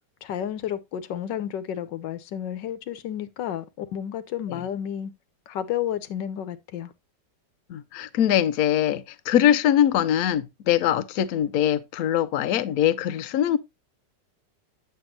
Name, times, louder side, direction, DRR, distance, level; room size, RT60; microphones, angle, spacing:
voice 1, 0.2-5.1 5.5-6.9, left 10 dB, 90° left, 1.5 m, -31 dB
voice 2, 7.7-13.6, left 10 dB, 65° left, 1.0 m, -22 dB
8.8 x 7.0 x 2.7 m
omnidirectional pair, 1.9 m